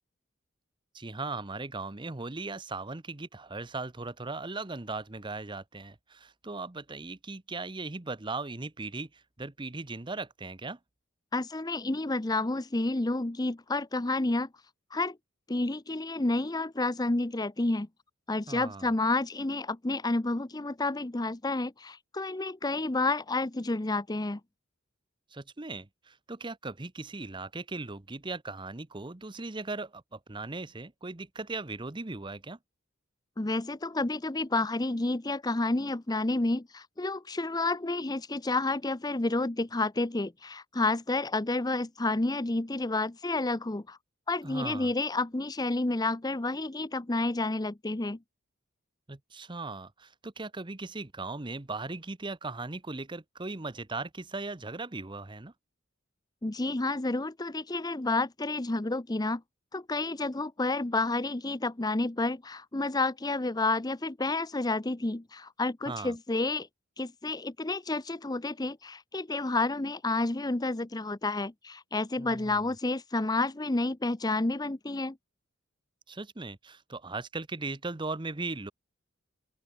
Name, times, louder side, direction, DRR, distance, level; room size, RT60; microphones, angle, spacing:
voice 1, 0.9-10.8 18.5-18.9 25.3-32.6 44.4-44.9 49.1-55.5 65.9-66.2 72.2-72.6 76.1-78.7, right 3 dB, 25° right, 0.9 m, -38 dB
voice 2, 11.3-14.5 14.9-15.2 15.5-17.9 18.3-24.4 33.4-44.0 44.3-48.2 56.4-59.4 59.7-66.7 67.0-75.2, left 2 dB, 20° left, 0.7 m, -30 dB
open air
head